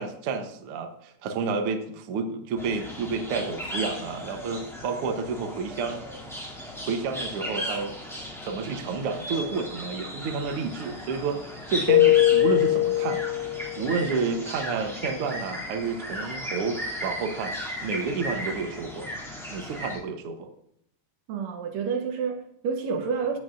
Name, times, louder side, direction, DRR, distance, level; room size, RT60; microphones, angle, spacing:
voice 1, 0.0-6.0 6.9-7.9 8.4-13.2 13.8-17.5 17.8-19.1 19.5-20.5, right 4 dB, 90° right, 1.2 m, -30 dB
sound 1, 2.6-20.0, equal, ahead, 1.9 m, -36 dB
Keyboard (musical), 11.9-13.9, left 14 dB, 85° left, 2.3 m, -21 dB
voice 2, 21.3-23.4, right 6 dB, 70° right, 1.7 m, -29 dB
15.0 x 8.1 x 2.5 m
omnidirectional pair, 4.1 m